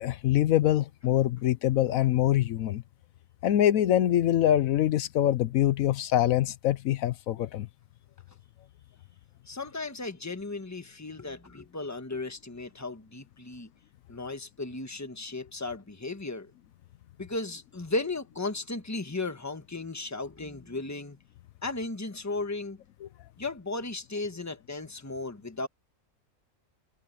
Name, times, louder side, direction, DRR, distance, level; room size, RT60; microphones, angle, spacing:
voice 1, 0.0-2.8 3.4-7.7, left 12 dB, 80° left, 1.1 m, -24 dB
voice 2, 9.5-13.7 14.1-16.5 17.2-21.2 21.6-22.8 23.4-25.7, left 3 dB, 15° left, 1.3 m, -35 dB
omnidirectional pair, 1.4 m